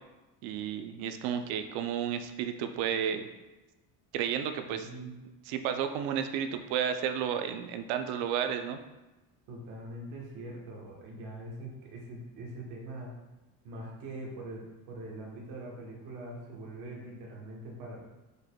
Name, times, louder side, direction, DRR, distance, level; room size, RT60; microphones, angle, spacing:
voice 1, 0.4-3.3 4.1-4.9 5.5-8.8, right 8 dB, 80° right, 8 dB, 0.5 m, -32 dB
voice 2, 4.7-5.1 9.5-13.1 13.6-18.0, right 1 dB, 55° right, -2 dB, 1.2 m, -43 dB
5.0 x 4.4 x 2.2 m, 1.1 s
cardioid pair, 170°, 37 cm